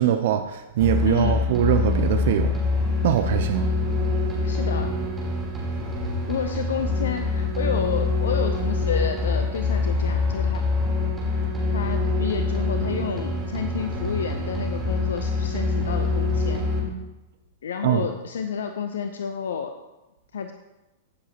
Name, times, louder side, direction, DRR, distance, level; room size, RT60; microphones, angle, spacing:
voice 1, 0.0-2.5 3.0-3.7 17.8-18.0, right 11 dB, 55° right, 8 dB, 0.6 m, -22 dB
sound 1, 0.8-16.8, left 3 dB, 10° right, 3.3 m, -25 dB
voice 2, 1.0-1.4 4.4-5.0 6.3-10.6 11.7-16.6 17.6-19.7 20.3-20.5, left 6 dB, 65° left, 7 dB, 0.6 m, -30 dB
15.5 x 7.2 x 2.9 m, 1.0 s
figure-of-eight pair, 100°, 0 cm